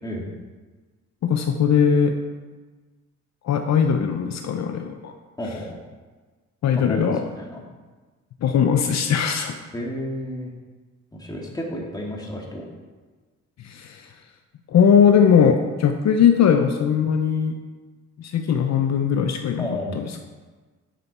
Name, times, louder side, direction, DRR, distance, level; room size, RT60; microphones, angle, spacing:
voice 1, 1.2-2.2 3.4-5.1 6.6-7.2 8.4-9.5 13.6-14.1 14.7-17.6 18.2-19.7 19.9-20.0, left 7 dB, 60° left, 5 dB, 0.8 m, -19 dB
voice 2, 5.4-5.8 6.7-7.6 9.7-10.5 11.1-12.6 19.6-20.0, left 1 dB, 15° left, -2 dB, 2.5 m, -32 dB
10.5 x 6.8 x 4.3 m, 1.3 s
cardioid pair, 90°, 30 cm